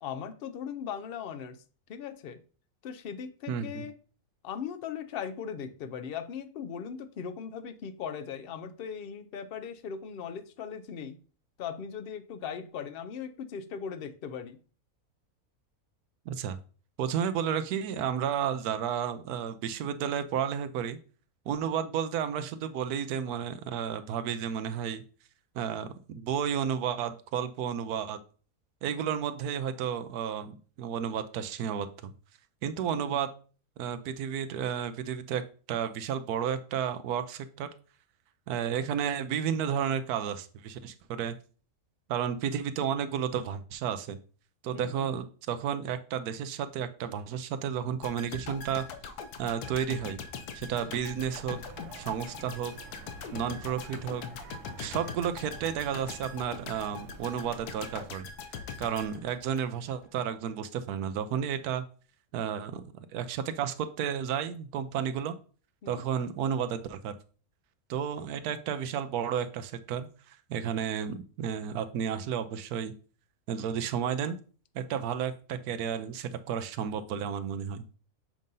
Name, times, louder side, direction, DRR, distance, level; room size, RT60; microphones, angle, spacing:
voice 1, 0.0-1.6 1.9-2.4 2.8-3.9 4.4-11.2 11.6-14.6 21.8-21.9 32.9-33.2 38.8-38.9 44.7-45.1 50.8-51.0 65.8-66.1, left 7 dB, 70° left, 10 dB, 0.5 m, -39 dB
voice 2, 3.5-3.9 16.3-16.6 17.0-21.0 21.5-25.0 25.5-28.2 28.8-32.1 32.6-33.3 33.8-35.4 35.7-37.7 38.5-41.3 42.1-44.2 44.6-48.8 49.4-50.2 50.5-51.6 51.9-52.7 53.3-54.2 54.8-58.3 58.8-61.8 62.3-65.4 65.9-67.1 67.9-72.9 73.5-74.4 74.7-77.8, right 8 dB, 90° right, 11 dB, 1.1 m, -32 dB
sound 1, 48.0-60.0 60.3-60.5, left 5 dB, 90° left, 1.3 m, -42 dB
sound 2, 51.2-58.1, right 7 dB, 65° right, 0.9 m, -49 dB
7.4 x 2.6 x 5.3 m, 0.39 s
omnidirectional pair, 1.6 m